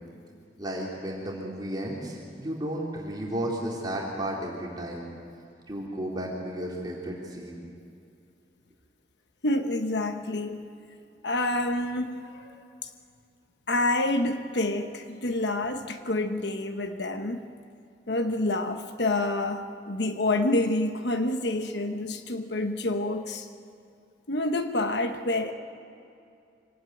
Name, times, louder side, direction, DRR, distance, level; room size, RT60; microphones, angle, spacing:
voice 1, 0.6-5.0 5.7-7.6, right 1 dB, 25° right, -4 dB, 3.3 m, -33 dB
voice 2, 9.4-10.6 11.2-12.5 12.8-12.9 13.7-17.4 18.1-23.5 24.3-25.5, left 2 dB, 70° left, 7 dB, 1.2 m, -28 dB
25.5 x 18.0 x 9.3 m, 2.5 s
head